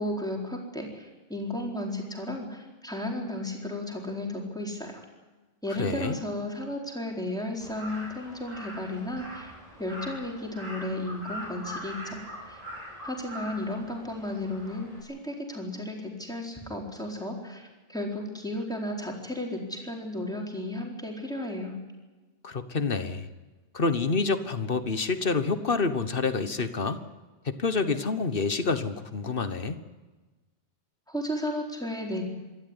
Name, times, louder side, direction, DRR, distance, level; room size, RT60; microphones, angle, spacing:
voice 1, 0.0-5.0 5.6-9.5 9.8-12.6 13.0-21.7 31.1-32.2, left 1 dB, 5° left, 0 dB, 4.2 m, -34 dB
voice 2, 5.8-6.2 22.4-23.3 23.7-27.0 27.4-29.8, left 4 dB, 60° left, 11 dB, 1.4 m, -28 dB
Crow, 7.6-15.0, equal, 35° right, 5.9 m, -42 dB
26.0 x 13.0 x 9.8 m, 1.2 s
omnidirectional pair, 1.1 m